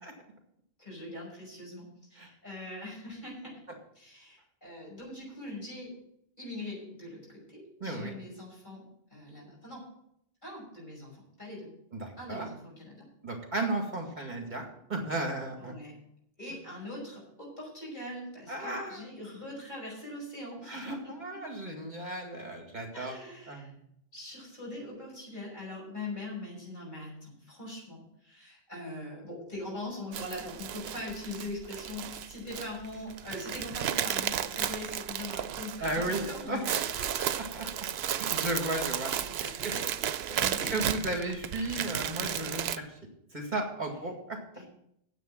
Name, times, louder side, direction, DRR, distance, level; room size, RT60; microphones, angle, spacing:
voice 1, 0.8-3.6 3.9-6.0 6.4-8.8 9.1-9.9 10.4-11.7 12.2-13.1 15.6-16.0 16.4-21.4 22.9-23.7 24.1-37.7 38.4-38.5 39.0-40.8 44.5-44.6, left 1 dB, 50° left, -3 dB, 5.9 m, -42 dB
voice 2, 7.8-8.1 11.9-12.5 13.2-15.8 18.5-19.0 20.7-23.1 23.5-23.7 35.8-36.9 37.5-37.6 38.2-39.3 40.3-40.4 40.7-42.9 43.3-44.4, right 2 dB, 50° right, 2 dB, 2.1 m, -34 dB
sound 1, 30.1-42.8, right 10 dB, 80° right, 0.8 m, -34 dB
9.3 x 8.1 x 7.3 m, 0.74 s
omnidirectional pair, 1.0 m